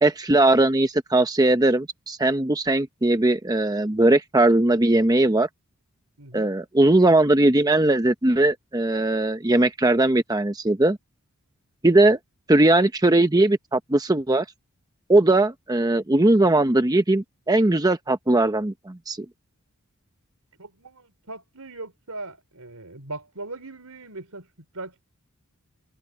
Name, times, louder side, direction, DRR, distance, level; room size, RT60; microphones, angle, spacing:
voice 1, 0.0-5.5 6.3-11.0 11.8-12.2 12.5-14.4 15.1-19.3, right 2 dB, 15° right, 0.8 m, -19 dB
voice 2, 6.2-6.5 12.0-12.1 20.6-24.5 24.7-25.0, right 2 dB, 80° right, 4.7 m, -39 dB
head